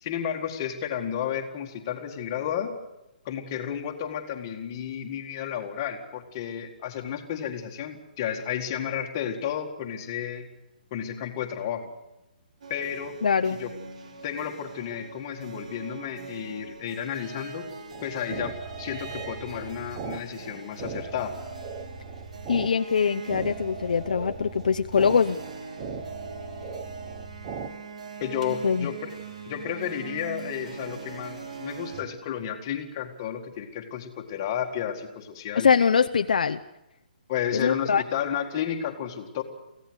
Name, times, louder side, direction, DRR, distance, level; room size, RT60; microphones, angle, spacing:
voice 1, 0.0-2.8 3.3-10.5 10.9-11.9 12.7-13.2 13.5-13.7 14.2-17.6 18.0-21.3 28.2-29.1 29.5-35.7 37.3-39.4, left 9 dB, 20° left, 3 dB, 1.8 m, -32 dB
sound 1, 12.6-32.0, right 4 dB, 50° right, 3.2 m, -42 dB
voice 2, 13.2-13.6 22.5-25.4 28.6-28.9 35.5-36.6 37.5-38.0, left 6 dB, 55° left, 9 dB, 0.7 m, -23 dB
sound 2, 17.9-27.7, right 5 dB, 15° right, 1.0 m, -38 dB
24.5 x 16.0 x 8.1 m, 0.92 s
hypercardioid pair, 175°, 5 cm